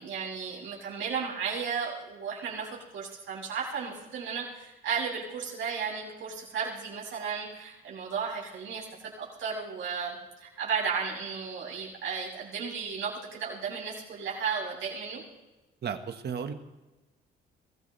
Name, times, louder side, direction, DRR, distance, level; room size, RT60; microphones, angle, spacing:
voice 1, 0.0-2.7 2.9-15.2, right 6 dB, 80° right, -5 dB, 7.6 m, -34 dB
voice 2, 15.8-16.5, right 7 dB, 55° right, 7 dB, 1.6 m, -34 dB
23.5 x 16.0 x 3.4 m, 1.1 s
cardioid pair, 90°, 20 cm